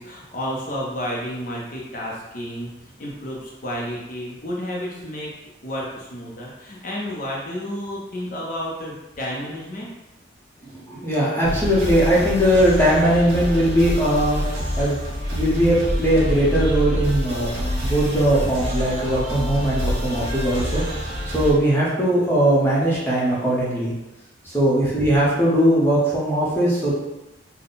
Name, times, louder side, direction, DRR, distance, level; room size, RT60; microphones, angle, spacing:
voice 1, 0.0-2.7 3.0-5.3 5.6-9.9, equal, 45° left, -3 dB, 0.6 m, -31 dB
voice 2, 10.7-14.4 14.8-15.0 15.3-23.9 24.4-26.9, right 1 dB, 10° left, -7 dB, 0.8 m, -20 dB
sound 1, 11.4-21.5, equal, 60° right, 1.3 m, -26 dB
3.7 x 2.2 x 3.9 m, 0.99 s
head